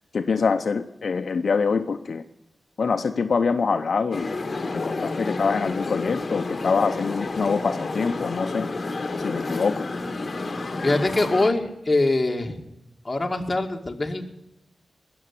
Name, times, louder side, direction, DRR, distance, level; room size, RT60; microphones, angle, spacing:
voice 1, 0.1-2.2 2.8-4.3 4.8-8.7 9.2-9.9, left 5 dB, 65° left, 8 dB, 0.7 m, -24 dB
sound 1, 4.1-11.5, left 3 dB, 45° left, 1.4 m, -30 dB
voice 2, 10.8-12.6 13.0-14.2, left 2 dB, 25° left, 2 dB, 2.1 m, -23 dB
20.5 x 7.1 x 8.3 m, 0.90 s
wide cardioid pair, 80°, 0 cm